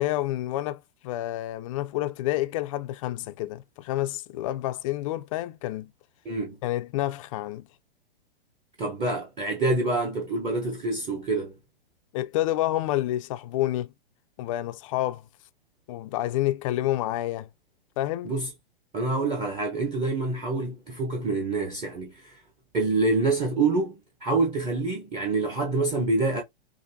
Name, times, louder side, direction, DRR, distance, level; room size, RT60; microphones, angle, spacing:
voice 1, 0.0-5.9 6.6-7.7 12.1-13.9 14.4-15.2 15.9-17.5 18.0-18.3, left 15 dB, 35° left, 0.4 m, -29 dB
voice 2, 6.2-6.6 8.8-11.6 18.2-18.5 18.9-22.4 22.7-26.4, right 3 dB, 20° right, 0.9 m, -26 dB
5.1 x 2.6 x 2.7 m
hypercardioid pair, 115°, 30 cm